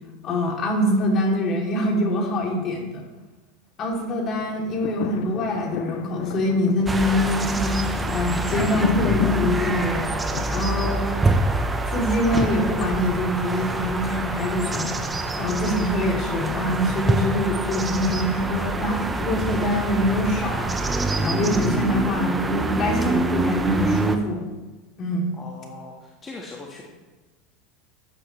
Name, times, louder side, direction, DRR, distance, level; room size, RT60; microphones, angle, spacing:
voice 1, 0.2-3.0 3.8-11.0 11.9-15.0 15.3-24.5 25.0-25.4, left 1 dB, 40° left, 0 dB, 3.2 m, -24 dB
sound 1, 4.4-12.7 13.2-13.3, left 14 dB, 60° left, 0.4 m, -33 dB
sound 2, 6.9-24.2, right 2 dB, 15° right, 1.2 m, -26 dB
voice 2, 25.3-26.8, left 3 dB, 25° left, -2 dB, 1.8 m, -40 dB
14.0 x 10.0 x 3.4 m, 1.2 s
hypercardioid pair, 90°, 0 cm